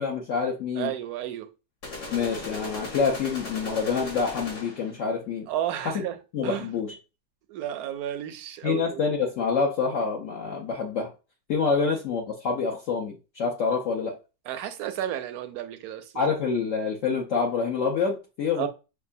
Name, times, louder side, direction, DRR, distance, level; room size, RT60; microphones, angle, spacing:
voice 1, 0.0-0.9 2.1-5.5 5.8-6.0 6.3-6.9 8.6-11.1 11.5-14.1 16.1-18.7, left 5 dB, 60° left, 1.0 m, -27 dB
voice 2, 0.8-1.5 5.5-6.2 6.4-6.7 7.5-9.0 14.5-16.1 18.6-18.7, right 11 dB, 75° right, 1.0 m, -32 dB
sound 1, 1.8-5.0, left 2 dB, 85° left, 2.3 m, -37 dB
6.6 x 2.4 x 2.6 m
omnidirectional pair, 1.7 m